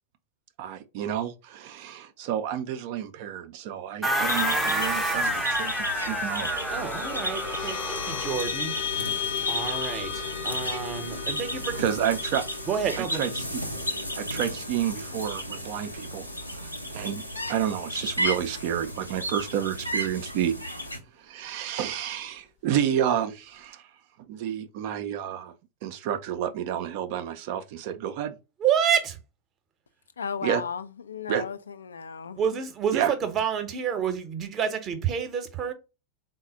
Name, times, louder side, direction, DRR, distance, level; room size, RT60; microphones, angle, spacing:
voice 1, 0.6-6.8 11.8-12.4 13.0-13.6 14.2-17.2 17.5-20.5 21.2-23.8 24.3-25.5 25.8-28.4 30.4-30.6 31.3-31.4 32.9-33.1, right 10 dB, 50° right, 0.4 m, -30 dB
sound 1, 4.0-8.4, equal, ahead, 0.6 m, -28 dB
sound 2, 4.2-21.0, equal, 85° left, 0.7 m, -34 dB
sound 3, 5.8-16.5, left 8 dB, 45° left, 0.6 m, -36 dB
voice 2, 6.7-8.7 9.5-11.8 12.7-13.3 28.6-29.2 32.4-35.7, right 8 dB, 30° right, 0.8 m, -29 dB
voice 3, 30.2-32.4, left 6 dB, 70° left, 0.3 m, -35 dB
3.9 x 2.1 x 3.9 m
figure-of-eight pair, 90°, 0 cm